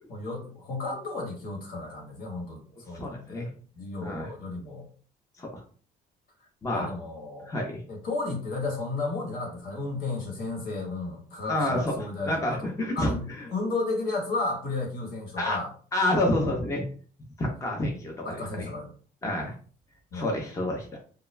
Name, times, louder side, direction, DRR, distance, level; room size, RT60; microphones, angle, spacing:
voice 1, 0.1-3.5 3.7-4.8 6.7-7.5 7.9-15.7 18.2-18.9 20.1-20.3, left 3 dB, 60° left, 0 dB, 1.2 m, -33 dB
voice 2, 2.9-3.5 4.0-4.3 5.4-5.6 6.6-6.9 7.5-7.8 11.5-11.9 12.2-13.4 15.4-15.6 15.9-16.8 17.4-18.7 19.2-19.5 20.1-20.9, left 1 dB, 20° left, 0 dB, 0.6 m, -28 dB
2.3 x 2.2 x 3.1 m, 0.41 s
cardioid pair, 110°, 17 cm